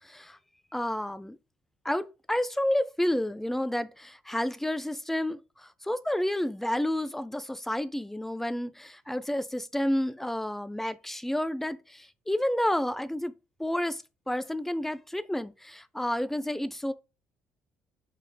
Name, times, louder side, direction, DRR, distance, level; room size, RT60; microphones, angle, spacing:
voice 1, 0.7-1.4 1.9-5.4 5.9-13.3 13.6-14.0 14.3-16.9, left 1 dB, 5° left, 0.4 m, -30 dB
5.2 x 3.2 x 2.2 m
supercardioid pair, 60°, 6 cm